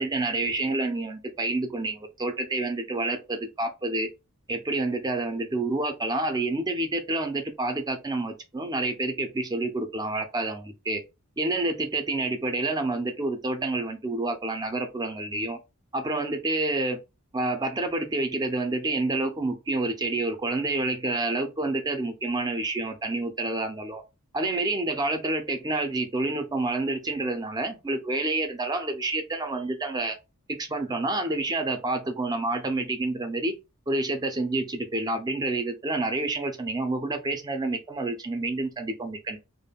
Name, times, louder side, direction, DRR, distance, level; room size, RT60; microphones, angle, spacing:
voice 1, 0.0-4.1 4.5-11.0 11.4-15.6 15.9-17.0 17.3-24.0 24.3-30.2 30.5-33.5 33.9-39.4, right 2 dB, 20° right, 0.4 m, -28 dB
2.3 x 2.1 x 3.3 m
head